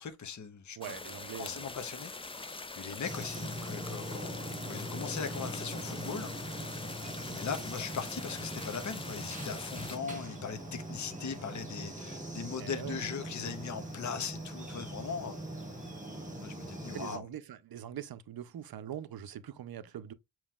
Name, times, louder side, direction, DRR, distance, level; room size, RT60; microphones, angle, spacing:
voice 1, 0.0-0.8 1.4-6.3 7.2-15.4 16.4-17.3, left 6 dB, 45° left, 0.8 m, -39 dB
sound 1, 0.8-10.0, left 3 dB, 15° left, 0.3 m, -44 dB
voice 2, 0.8-1.7 12.6-13.0 16.9-20.1, right 10 dB, 60° right, 0.6 m, -43 dB
sound 2, 3.0-17.2, right 1 dB, 15° right, 1.6 m, -41 dB
7.1 x 3.0 x 2.3 m
wide cardioid pair, 120°, 42 cm